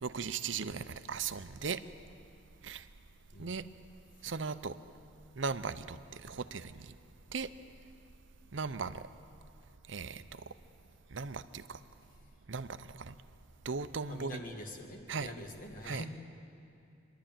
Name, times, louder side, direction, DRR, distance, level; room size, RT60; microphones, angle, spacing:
voice 1, 0.0-1.8 2.6-2.9 3.4-3.6 4.2-4.8 5.4-6.9 7.3-7.5 8.5-9.0 9.9-10.5 11.1-11.8 12.5-13.1 13.6-14.4 15.1-15.3 15.8-16.0, right 5 dB, 70° right, 12 dB, 0.7 m, -38 dB
voice 2, 14.1-16.2, left 1 dB, 45° left, 3 dB, 2.0 m, -44 dB
26.5 x 11.5 x 9.0 m, 2.6 s
head